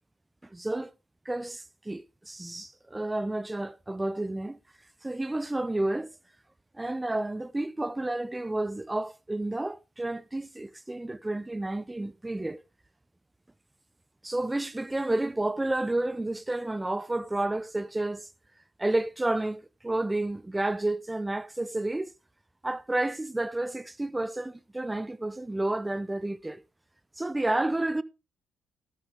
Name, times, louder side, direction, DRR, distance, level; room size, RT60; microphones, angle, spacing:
voice 1, 0.5-0.9 1.3-4.6 5.0-6.1 6.7-12.6 14.2-18.3 18.8-22.1 22.6-26.6 27.2-28.0, right 2 dB, 15° right, 0.6 m, -30 dB
13.0 x 11.0 x 3.4 m
cardioid pair, 90°, 0 cm